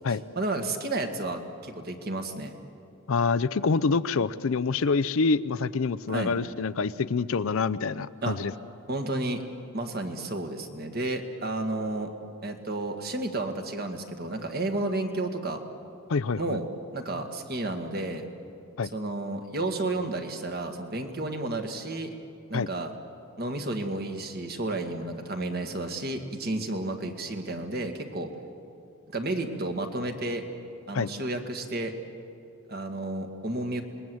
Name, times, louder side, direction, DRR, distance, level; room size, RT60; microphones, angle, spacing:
voice 1, 0.1-2.5 6.1-6.3 8.2-8.4 8.9-9.4 9.7-12.1 12.4-15.6 16.4-16.6 16.9-18.3 18.9-22.1 22.5-22.9 23.4-28.3 29.1-30.4 30.9-31.9 32.7-33.8, right 2 dB, 45° right, 5 dB, 1.8 m, -32 dB
voice 2, 3.1-8.5 16.1-16.4 18.8-18.9 22.5-22.7 30.9-31.1, left 4 dB, 60° left, 14 dB, 0.5 m, -26 dB
27.0 x 20.5 x 7.8 m, 2.6 s
head